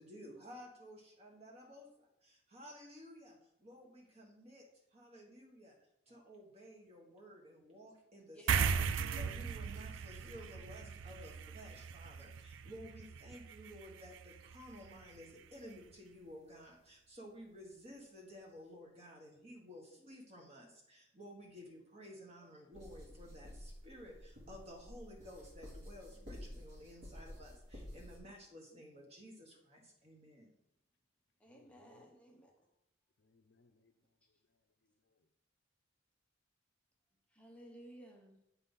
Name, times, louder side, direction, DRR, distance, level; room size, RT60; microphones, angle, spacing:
voice 1, 0.0-4.6 4.9-5.7 6.1-8.9 9.2-30.5, equal, 30° right, 1.7 m, -54 dB
voice 2, 8.3-9.2 10.5-10.6 31.4-32.7 37.3-38.4, right 1 dB, 5° left, 0.8 m, -56 dB
sound 1, 8.5-15.3, right 6 dB, 80° right, 0.4 m, -38 dB
sound 2, 22.7-28.2, left 1 dB, 60° right, 2.6 m, -51 dB
voice 3, 31.4-32.1 33.2-33.9 34.5-35.3, left 3 dB, 60° left, 0.6 m, -71 dB
8.0 x 4.1 x 5.5 m
head